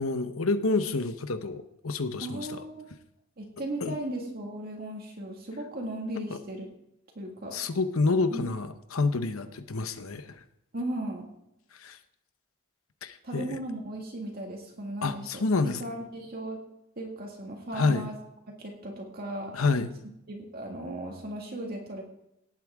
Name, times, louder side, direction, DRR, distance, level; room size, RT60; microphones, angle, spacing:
voice 1, 0.0-2.6 3.8-3.9 6.3-6.4 7.5-10.3 11.8-12.0 13.0-13.6 15.0-15.8 17.7-18.0 19.5-19.9, left 3 dB, 85° left, 10 dB, 1.0 m, -28 dB
voice 2, 2.2-2.8 3.4-6.7 7.2-7.6 8.3-8.5 10.7-11.3 13.2-16.6 17.0-18.1 18.6-19.5 20.3-22.0, right 1 dB, 50° right, 0 dB, 1.9 m, -36 dB
18.0 x 8.6 x 3.6 m, 0.83 s
head